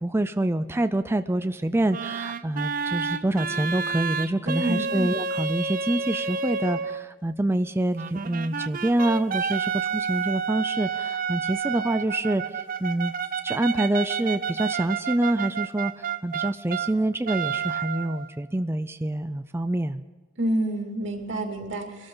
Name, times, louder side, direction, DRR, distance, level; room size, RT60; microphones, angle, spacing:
voice 1, 0.0-13.1 13.4-20.0, right 1 dB, 15° right, 10 dB, 0.4 m, -26 dB
sound 1, 1.9-7.0 7.9-16.9 17.2-18.3, right 6 dB, 50° right, 0.7 m, -30 dB
voice 2, 4.5-4.9 20.4-22.1, right 1 dB, 85° right, 2 dB, 2.6 m, -28 dB
22.5 x 13.0 x 3.9 m, 1.3 s
head